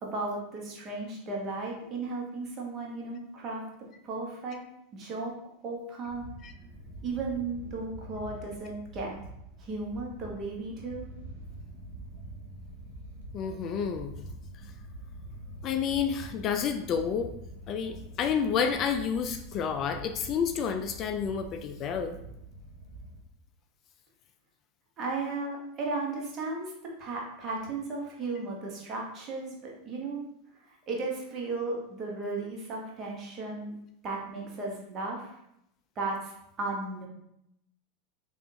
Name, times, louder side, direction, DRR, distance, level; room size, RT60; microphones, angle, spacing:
voice 1, 0.0-3.6 4.0-4.6 4.9-5.3 5.6-6.3 7.0-9.1 9.6-11.1 25.0-26.7 27.0-30.2 30.7-33.8 34.0-35.4 36.0-37.1, right 3 dB, 40° right, -1 dB, 1.1 m, -35 dB
sound 1, 6.0-23.2, right 1 dB, 70° right, 0.7 m, -45 dB
voice 2, 13.3-14.1 15.6-17.3 17.7-22.2, left 7 dB, 40° left, 7 dB, 0.3 m, -30 dB
3.5 x 2.4 x 2.8 m, 0.78 s
hypercardioid pair, 85°, 0 cm